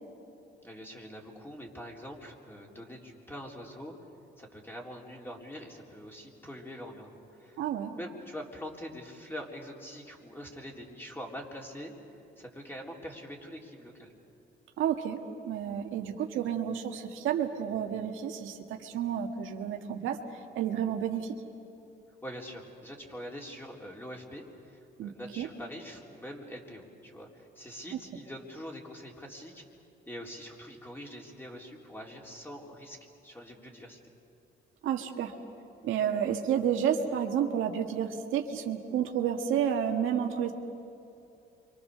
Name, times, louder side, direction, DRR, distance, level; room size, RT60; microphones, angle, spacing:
voice 1, 0.6-3.9 4.4-7.6 7.9-11.9 12.4-14.1 22.2-29.6 30.1-33.0 33.2-34.0, equal, 10° left, -1 dB, 4.0 m, -44 dB
voice 2, 7.6-7.9 14.8-15.2 15.4-20.2 20.5-21.3 25.0-25.5 34.8-35.3 35.8-40.5, right 9 dB, 85° right, 3 dB, 1.7 m, -30 dB
29.0 x 25.0 x 6.8 m, 2.7 s
cardioid pair, 90°, 20 cm